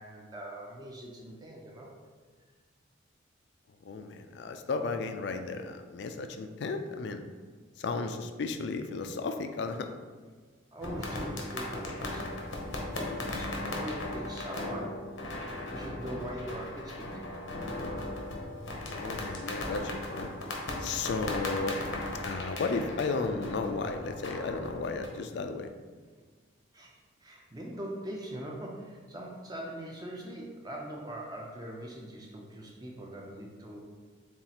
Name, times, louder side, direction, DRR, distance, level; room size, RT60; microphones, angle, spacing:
voice 1, 0.0-1.9 10.7-15.1 15.7-17.6 26.7-26.9 27.2-33.8, right 1 dB, 20° right, -1 dB, 0.5 m, -42 dB
voice 2, 3.8-7.2 7.8-9.9 18.9-20.3 20.8-21.8 22.2-25.7, left 4 dB, 55° left, 7 dB, 0.3 m, -34 dB
sound 1, 10.8-25.1, left 2 dB, 75° left, 0.8 m, -37 dB
7.1 x 2.4 x 2.9 m, 1.5 s
head